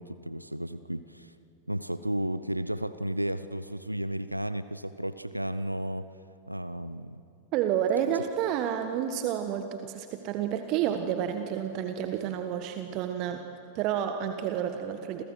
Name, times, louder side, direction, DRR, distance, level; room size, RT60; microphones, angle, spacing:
voice 1, 0.0-1.3 1.7-6.1 6.5-7.2, right 1 dB, 90° right, 14 dB, 0.6 m, -33 dB
voice 2, 7.5-13.4 13.7-15.2, right 9 dB, 40° right, 7 dB, 1.5 m, -30 dB
29.5 x 27.5 x 6.3 m, 2.8 s
figure-of-eight pair, 90°, 0 cm